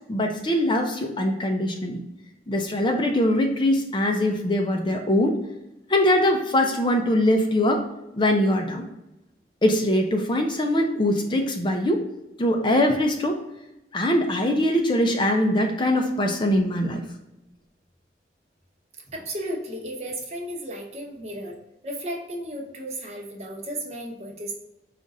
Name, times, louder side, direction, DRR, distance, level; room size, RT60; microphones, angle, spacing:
voice 1, 0.1-2.0 2.5-5.4 5.9-7.8 8.1-8.9 9.6-12.0 12.4-13.4 13.9-17.0, left 1 dB, 25° left, 3 dB, 0.5 m, -22 dB
voice 2, 19.1-21.5 21.8-24.5, right 1 dB, 35° right, 0 dB, 0.9 m, -34 dB
5.2 x 2.5 x 4.0 m, 0.93 s
head